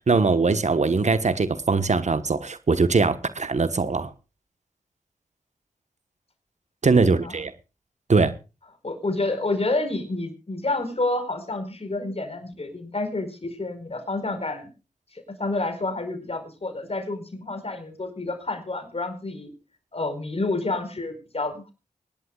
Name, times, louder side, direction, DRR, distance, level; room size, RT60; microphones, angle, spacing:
voice 1, 0.1-4.1 6.8-7.5 8.1-8.3, right 4 dB, 55° right, 1.3 m, -21 dB
voice 2, 8.8-14.7 15.4-19.5 19.9-21.7, left 2 dB, 45° left, 4.9 m, -29 dB
24.5 x 11.0 x 2.4 m
cardioid pair, 40°, 14 cm